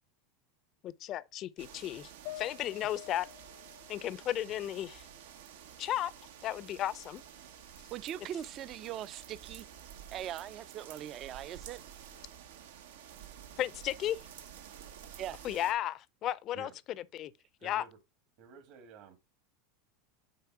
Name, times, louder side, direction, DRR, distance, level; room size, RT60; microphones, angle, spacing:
voice 1, 0.8-2.1 2.4-3.3 3.9-5.1 5.8-6.1 6.4-7.2 13.6-14.2 15.4-16.7 17.1-17.3 17.6-17.8, left 12 dB, 40° left, 0.5 m, -34 dB
sound 1, 1.6-15.7, right 9 dB, 85° right, 1.0 m, -51 dB
sound 2, 2.2-5.7 6.0-7.1, left 15 dB, 70° left, 0.8 m, -51 dB
voice 2, 7.9-9.7 10.1-11.8 15.2-15.4, right 11 dB, 40° right, 0.4 m, -40 dB
voice 3, 17.6-18.0 18.4-19.2, right 7 dB, 60° right, 1.8 m, -52 dB
6.8 x 4.2 x 4.6 m
supercardioid pair, 135°, 0 cm